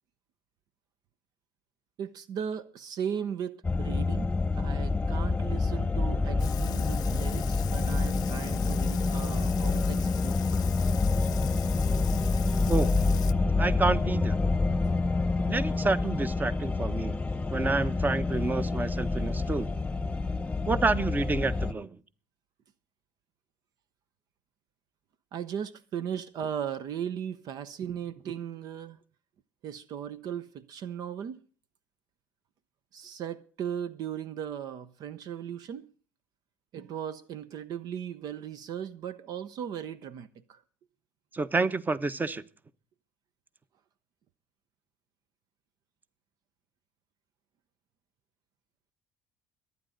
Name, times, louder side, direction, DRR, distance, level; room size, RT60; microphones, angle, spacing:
voice 1, 2.0-10.6 25.3-29.0 29.6-31.4 32.9-35.9 36.7-40.6, right 8 dB, 60° right, 0.9 m, -37 dB
sound 1, 3.6-21.7, left 3 dB, 15° left, 1.1 m, -27 dB
Sink (filling or washing), 6.4-13.3, left 13 dB, 60° left, 0.7 m, -41 dB
voice 2, 13.6-14.4 15.5-17.2 17.5-19.7 20.7-22.0 41.3-42.4, right 3 dB, 25° right, 1.2 m, -29 dB
23.0 x 9.5 x 4.0 m
hypercardioid pair, 65°, 8 cm